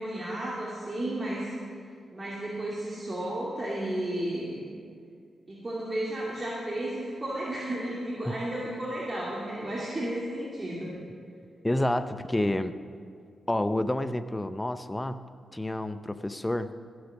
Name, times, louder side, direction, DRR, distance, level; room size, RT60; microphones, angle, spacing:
voice 1, 0.0-1.5 2.1-4.6 5.5-11.0, right 1 dB, 30° right, -6 dB, 2.3 m, -33 dB
voice 2, 11.6-12.7 13.5-15.2 15.5-16.7, left 1 dB, 15° left, 11 dB, 0.6 m, -29 dB
15.5 x 6.4 x 6.1 m, 2.2 s
cardioid pair, 60°, 0 cm